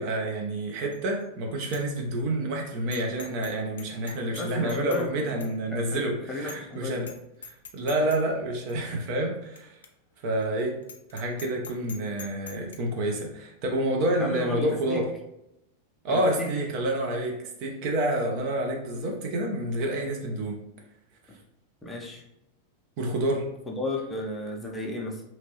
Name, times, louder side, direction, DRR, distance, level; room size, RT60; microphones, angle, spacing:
voice 1, 0.0-7.1 7.4-9.8 10.2-10.8 11.1-15.1 16.0-20.6 23.0-23.5, right 1 dB, 45° right, 1 dB, 0.6 m, -28 dB
Bicycle bell, 0.9-1.3 1.6-1.8 2.2-2.3 2.9-3.5 3.8-5.1 5.4-5.5 5.9-6.0 6.5-6.7 7.0-7.2 7.4-8.2 8.7-8.8 9.6-9.7 9.8-9.9 10.3-10.4 10.8-12.8, left 6 dB, 65° left, 0.4 m, -43 dB
voice 2, 4.4-5.3 5.7-7.0 14.2-15.0 16.1-16.5 21.8-22.2 23.7-25.2, left 1 dB, 15° left, -1 dB, 0.6 m, -34 dB
2.9 x 2.6 x 2.8 m, 0.82 s
figure-of-eight pair, 90°, 0 cm